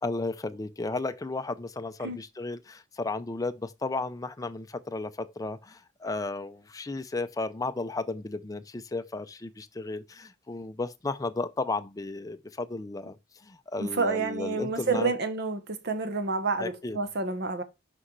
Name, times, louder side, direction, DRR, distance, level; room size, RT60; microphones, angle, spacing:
voice 1, 0.0-15.1 16.6-17.0, left 3 dB, 20° left, 0.5 m, -34 dB
voice 2, 13.8-17.6, right 4 dB, 55° right, 1.0 m, -29 dB
6.1 x 5.3 x 3.1 m
head